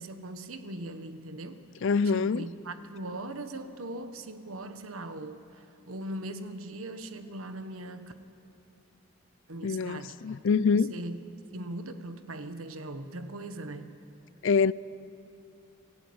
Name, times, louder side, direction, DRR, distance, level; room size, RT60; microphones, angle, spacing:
voice 1, 0.0-1.6 2.0-8.1 9.5-10.1 10.9-11.2 11.5-13.9, right 1 dB, 80° right, 1.4 m, -40 dB
voice 2, 1.8-2.4 9.6-10.9 14.4-14.7, left 5 dB, 60° left, 0.4 m, -25 dB
26.5 x 16.5 x 8.7 m
head